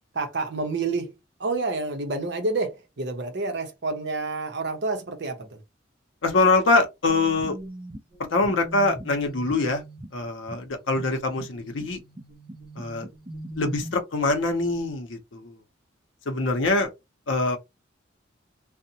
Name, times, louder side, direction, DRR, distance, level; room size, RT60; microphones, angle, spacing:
voice 1, 0.1-1.1 1.4-5.6, right 3 dB, 60° right, 0.7 m, -29 dB
voice 2, 6.2-7.6 8.2-9.8 10.1-12.0 12.8-13.1 13.6-15.6 16.3-16.9 17.3-17.6, left 3 dB, 75° left, 0.6 m, -24 dB
sound 1, 7.1-13.9, right 1 dB, 25° right, 0.5 m, -41 dB
2.6 x 2.1 x 2.7 m
head